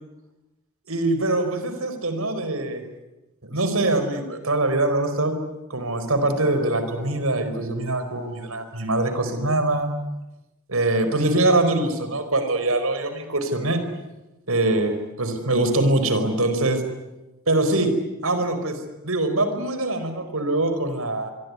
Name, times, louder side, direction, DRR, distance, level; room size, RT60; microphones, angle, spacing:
voice 1, 0.9-2.8 3.4-5.3 5.7-9.9 10.7-13.8 14.5-16.8 17.5-17.9 18.2-21.3, right 2 dB, 75° right, 9 dB, 4.7 m, -23 dB
26.5 x 22.5 x 9.7 m, 1.0 s
head